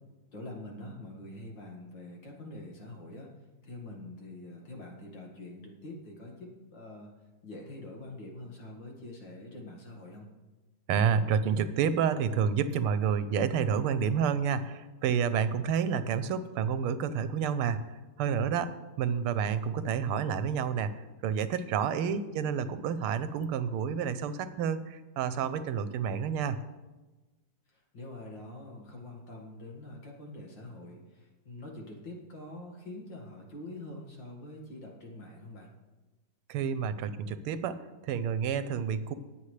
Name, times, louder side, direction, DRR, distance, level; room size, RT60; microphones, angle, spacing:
voice 1, 0.3-3.3 3.6-7.1 7.4-10.3 22.0-22.6 27.9-35.7, left 1 dB, 60° left, 0 dB, 2.5 m, -45 dB
voice 2, 10.9-17.8 18.2-20.9 21.2-26.6 36.5-39.1, right 7 dB, 85° right, 13 dB, 1.6 m, -29 dB
19.5 x 8.1 x 3.3 m, 1.2 s
omnidirectional pair, 2.4 m